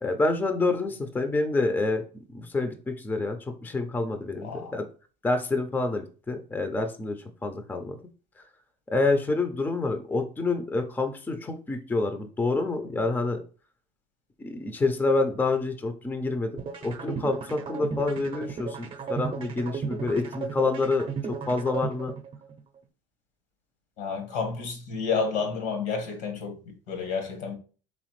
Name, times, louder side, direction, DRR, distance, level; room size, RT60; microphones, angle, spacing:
voice 1, 0.0-2.0 2.3-4.8 5.2-7.2 7.4-7.9 8.9-13.4 14.4-21.1 21.5-22.1, left 3 dB, 10° left, 0.5 m, -27 dB
voice 2, 4.4-4.8 24.0-27.5, left 5 dB, 75° left, 1.6 m, -30 dB
sound 1, 16.6-22.6, right 6 dB, 35° right, 0.7 m, -34 dB
4.2 x 3.4 x 3.1 m
supercardioid pair, 100°, 15 cm